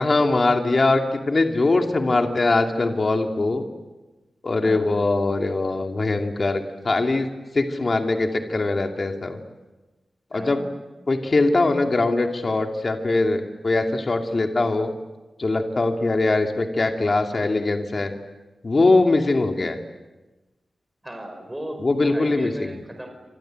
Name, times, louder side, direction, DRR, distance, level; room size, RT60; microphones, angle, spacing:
voice 1, 0.0-3.7 4.4-7.3 7.5-9.4 10.3-10.6 11.1-14.9 15.4-18.1 18.6-19.8 21.8-22.7, left 2 dB, 40° left, 3 dB, 2.7 m, -21 dB
voice 2, 4.6-5.0 10.3-10.7 21.0-21.8 22.1-23.1, equal, 10° right, 4 dB, 5.2 m, -36 dB
28.0 x 27.0 x 7.9 m, 1.1 s
wide cardioid pair, 125°, 0 cm